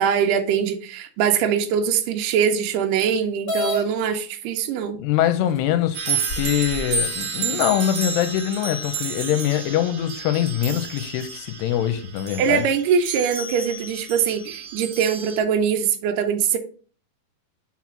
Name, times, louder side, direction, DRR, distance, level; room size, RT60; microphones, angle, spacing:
voice 1, 0.0-5.0 12.4-16.6, right 7 dB, 85° right, 1.9 m, -22 dB
sound 1, 3.5-3.8 4.8-4.9 5.6-5.7 6.3-7.0, equal, 65° left, 0.8 m, -27 dB
voice 2, 5.0-12.6, left 11 dB, 85° left, 2.5 m, -23 dB
sound 2, 5.9-15.4, right 5 dB, 65° right, 1.8 m, -31 dB
6.0 x 4.2 x 5.9 m
omnidirectional pair, 5.0 m